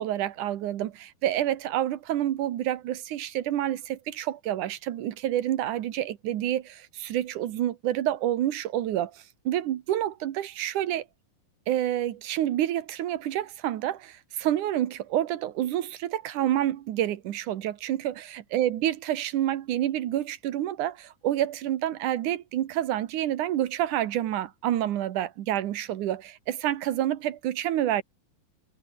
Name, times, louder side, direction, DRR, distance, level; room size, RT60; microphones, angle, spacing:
voice 1, 0.0-11.1 11.7-28.0, right 12 dB, 65° right, 2.6 m, -28 dB
omnidirectional pair, 4.1 m